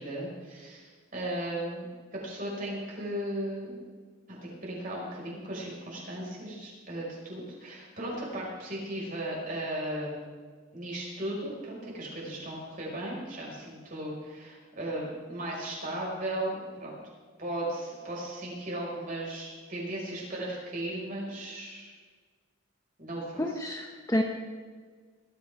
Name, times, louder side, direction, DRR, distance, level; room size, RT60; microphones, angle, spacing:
voice 1, 0.0-1.9 2.1-3.8 4.3-10.4 10.7-16.9 17.4-21.9 23.0-23.6, right 1 dB, 40° right, -4 dB, 5.6 m, -36 dB
voice 2, 23.4-24.2, left 1 dB, 15° left, 2 dB, 1.0 m, -29 dB
21.0 x 13.5 x 3.7 m, 1.5 s
head